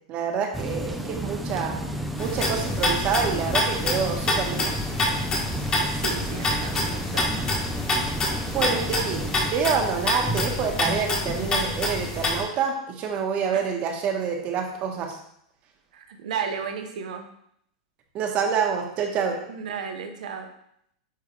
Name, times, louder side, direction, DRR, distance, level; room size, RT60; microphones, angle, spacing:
voice 1, 0.1-1.8 2.2-4.8 8.5-9.2 9.5-15.2 18.1-19.4, right 6 dB, 35° right, 3 dB, 1.2 m, -27 dB
sound 1, 0.5-9.5, equal, ahead, 0.5 m, -32 dB
sound 2, 2.2-12.4, left 1 dB, 20° left, 1.5 m, -27 dB
voice 2, 5.8-7.6 13.5-13.7 15.9-17.4 19.4-20.5, right 6 dB, 80° right, 5 dB, 0.9 m, -34 dB
9.4 x 3.4 x 3.2 m, 0.70 s
supercardioid pair, 145°, 4 cm